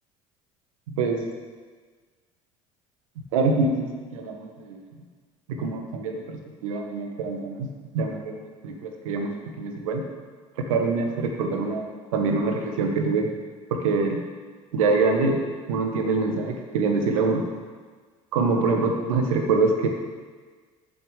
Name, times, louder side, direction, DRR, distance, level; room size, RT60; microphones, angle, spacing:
voice 1, 3.3-4.8 5.6-7.7 7.9-9.3 9.6-10.0 10.6-11.9 12.1-13.3 13.7-14.2 14.7-15.4 15.7-17.4 18.3-19.9, right 3 dB, 80° right, 3 dB, 1.5 m, -25 dB
7.5 x 7.1 x 7.9 m, 1.5 s
hypercardioid pair, 65°, 17 cm